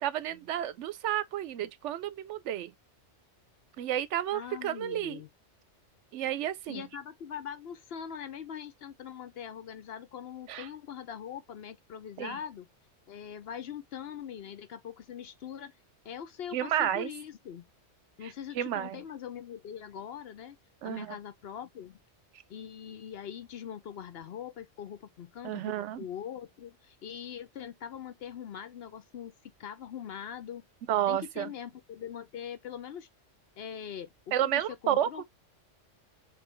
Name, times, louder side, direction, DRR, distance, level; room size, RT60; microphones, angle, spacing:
voice 1, 0.0-2.7 3.8-5.2 6.1-6.9 10.5-10.7 12.2-12.4 16.5-17.1 18.2-19.0 20.8-21.1 25.4-26.1 30.9-31.5 34.3-35.2, right 11 dB, 80° right, 0.9 m, -31 dB
voice 2, 4.3-5.3 6.7-12.7 13.1-15.7 16.0-17.6 18.2-20.6 20.8-22.0 22.5-29.3 29.6-30.6 31.1-33.1 33.6-35.2, left 8 dB, 60° left, 0.8 m, -42 dB
3.8 x 3.2 x 3.1 m
omnidirectional pair, 1.2 m